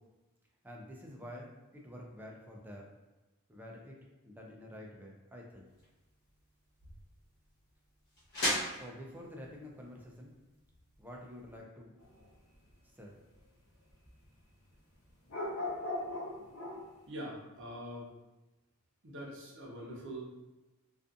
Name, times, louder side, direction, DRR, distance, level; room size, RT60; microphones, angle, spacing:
voice 1, 0.6-3.0 3.5-5.7 8.7-10.3 11.0-11.9 12.9-13.2, left 1 dB, 10° right, -1 dB, 0.3 m, -49 dB
sound 1, 5.7-11.6, equal, 50° left, 1.1 m, -41 dB
sound 2, 12.0-12.2 13.4-13.5 14.2-14.3 15.3-16.9, left 2 dB, 65° left, 0.7 m, -38 dB
voice 2, 17.1-18.1 19.0-20.2, equal, 55° right, -4 dB, 0.7 m, -43 dB
2.5 x 2.4 x 2.4 m, 1.1 s
head